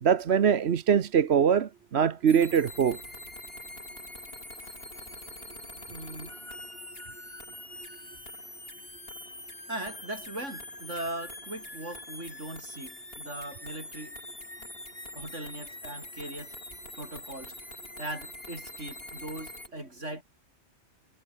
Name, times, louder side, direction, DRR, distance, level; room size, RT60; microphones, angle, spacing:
voice 1, 0.0-3.0, right 7 dB, 60° right, 1.2 m, -23 dB
sound 1, 2.3-19.7, left 1 dB, 55° left, 6.9 m, -44 dB
voice 2, 5.9-6.4 9.7-14.2 14.6-14.7 15.1-16.5 16.9-17.6 18.0-20.2, right 1 dB, 85° right, 8.6 m, -39 dB
omnidirectional pair, 1.2 m